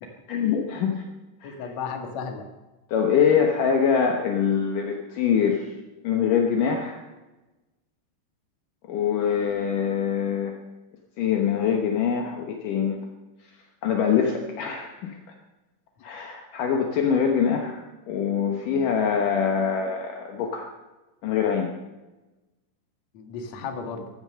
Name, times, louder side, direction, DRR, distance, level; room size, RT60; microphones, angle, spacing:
voice 1, 0.3-1.0 1.4-1.5 2.9-5.7 6.0-7.0 8.9-10.5 11.2-13.0 13.8-15.2 16.0-17.8 18.1-20.7 21.2-21.7, left 7 dB, 75° left, 2 dB, 1.9 m, -24 dB
voice 2, 1.4-2.5 23.1-24.1, left 5 dB, 55° left, 4 dB, 1.9 m, -34 dB
15.0 x 12.5 x 6.4 m, 1.1 s
omnidirectional pair, 5.6 m